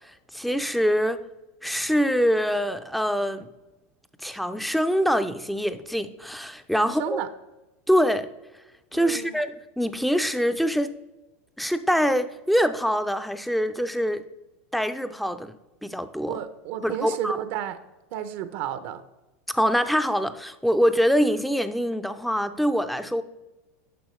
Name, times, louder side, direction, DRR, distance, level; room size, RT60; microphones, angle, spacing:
voice 1, 0.3-1.2 1.6-3.5 4.2-7.2 7.9-8.3 8.9-10.9 11.6-14.2 14.7-15.5 15.8-16.4 16.8-17.4 19.5-23.2, equal, ahead, 10 dB, 0.4 m, -24 dB
voice 2, 6.8-7.3 8.9-9.4 16.3-17.8 18.1-19.0, right 10 dB, 55° right, 11 dB, 0.6 m, -32 dB
10.0 x 6.0 x 3.1 m, 1.0 s
supercardioid pair, 135°, 8 cm